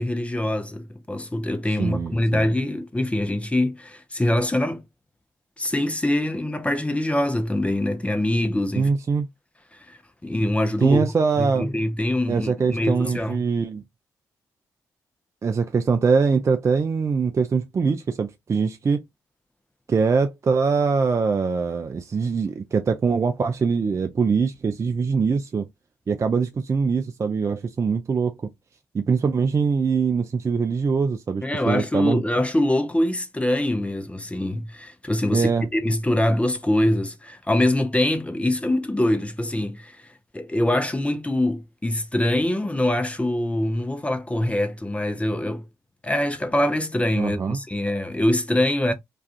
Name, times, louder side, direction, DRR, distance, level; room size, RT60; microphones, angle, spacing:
voice 1, 0.0-4.8 5.6-8.9 9.7-11.1 11.4-13.4 31.4-40.1 40.3-45.7 46.0-48.9, left 1 dB, 15° left, 0.6 m, -24 dB
voice 2, 1.8-2.5 8.8-9.3 10.8-11.7 12.3-13.8 15.4-19.0 19.9-25.7 26.1-28.4 28.9-32.2 35.3-35.7 47.2-47.6, right 5 dB, 35° right, 0.4 m, -23 dB
2.4 x 2.3 x 2.3 m
hypercardioid pair, 50°, 8 cm